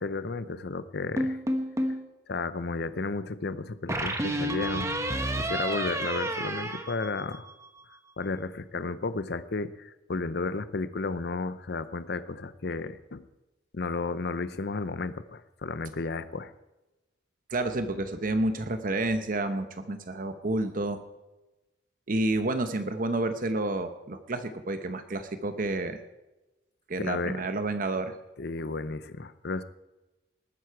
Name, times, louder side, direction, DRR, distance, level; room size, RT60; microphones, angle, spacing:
voice 1, 0.0-1.4 2.3-4.9 5.4-7.5 8.2-13.2 13.7-16.5 27.0-27.4 28.4-29.6, left 3 dB, 60° left, 14 dB, 0.7 m, -33 dB
sound 1, 1.2-2.1 3.9-7.7, right 1 dB, 15° right, 1.2 m, -30 dB
voice 2, 17.5-21.0 22.1-26.0 26.9-28.1, right 2 dB, 50° right, 9 dB, 0.9 m, -29 dB
19.5 x 9.7 x 4.6 m, 1.0 s
head